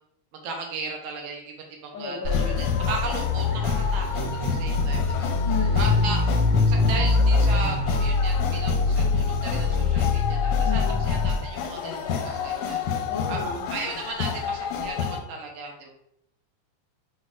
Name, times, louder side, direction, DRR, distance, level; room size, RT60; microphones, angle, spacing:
voice 1, 0.3-1.5 1.8-5.3 5.8-6.3 6.7-15.9, right 4 dB, 75° right, 1 dB, 2.0 m, -36 dB
voice 2, 1.9-2.7 5.4-6.1 10.6-11.0 13.1-13.7, left 5 dB, 65° left, -5 dB, 1.2 m, -33 dB
sound 1, 2.2-11.3, left 4 dB, 45° right, 2.2 m, -23 dB
sound 2, 2.3-15.2, left 6 dB, 90° left, 2.1 m, -30 dB
4.5 x 4.3 x 2.4 m, 0.75 s
omnidirectional pair, 3.5 m